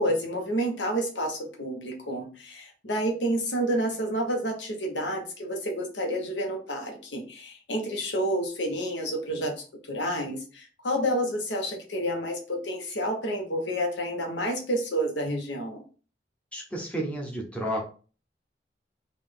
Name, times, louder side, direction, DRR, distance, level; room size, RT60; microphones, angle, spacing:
voice 1, 0.0-15.8, equal, 80° left, 2 dB, 1.1 m, -29 dB
voice 2, 16.5-17.8, right 1 dB, 5° left, -2 dB, 0.7 m, -31 dB
3.9 x 2.5 x 3.6 m, 0.37 s
head